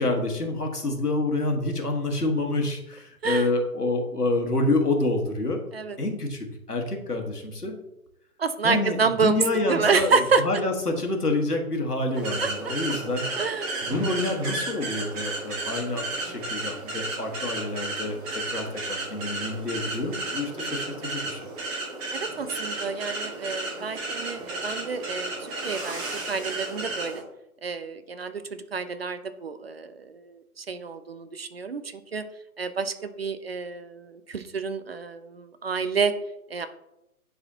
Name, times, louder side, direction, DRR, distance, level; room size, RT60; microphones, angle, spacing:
voice 1, 0.0-5.6 6.0-7.8 8.6-13.3 13.8-21.4, left 2 dB, 85° left, 2 dB, 1.6 m, -27 dB
voice 2, 8.4-9.4 9.7-10.4 12.4-12.5 13.3-13.8 14.8-15.1 22.1-26.0 26.3-27.2 27.6-28.4 28.7-31.8 32.1-32.2 32.6-36.1 36.5-36.7, right 5 dB, 45° right, 11 dB, 0.5 m, -28 dB
sound 1, 12.1-27.2, right 2 dB, 25° right, 1.9 m, -33 dB
10.5 x 4.1 x 2.8 m, 0.88 s
figure-of-eight pair, 130°, 45 cm